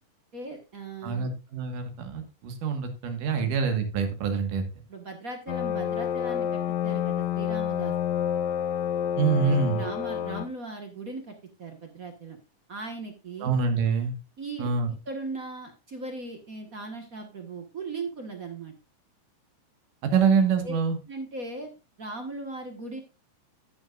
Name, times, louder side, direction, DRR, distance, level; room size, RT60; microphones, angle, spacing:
voice 1, 0.3-1.3 3.3-3.5 4.9-7.9 9.5-12.4 12.7-13.5 14.4-14.7 15.1-18.7 20.6-20.7 21.1-21.7 22.0-23.0, right 3 dB, 45° right, 4 dB, 1.1 m, -38 dB
voice 2, 1.0-4.6 9.2-9.8 13.4-14.1 14.6-14.9 20.0-21.0, right 5 dB, 75° right, 6 dB, 3.1 m, -25 dB
sound 1, 5.5-10.5, left 9 dB, 75° left, 1.4 m, -28 dB
15.0 x 7.1 x 2.5 m, 0.28 s
omnidirectional pair, 3.8 m